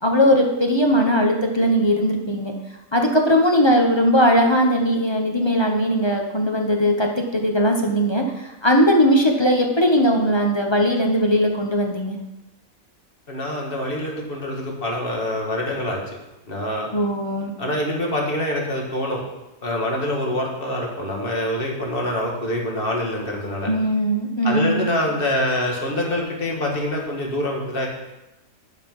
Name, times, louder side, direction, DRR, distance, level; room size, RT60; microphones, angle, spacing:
voice 1, 0.0-2.5 2.9-12.2 16.9-17.6 23.7-24.8, equal, 20° left, 2 dB, 0.9 m, -19 dB
voice 2, 13.3-16.0 16.5-16.9 17.6-19.2 19.6-23.7 24.4-27.9, left 1 dB, 40° left, -1 dB, 2.0 m, -25 dB
11.0 x 5.4 x 5.4 m, 0.98 s
omnidirectional pair, 1.5 m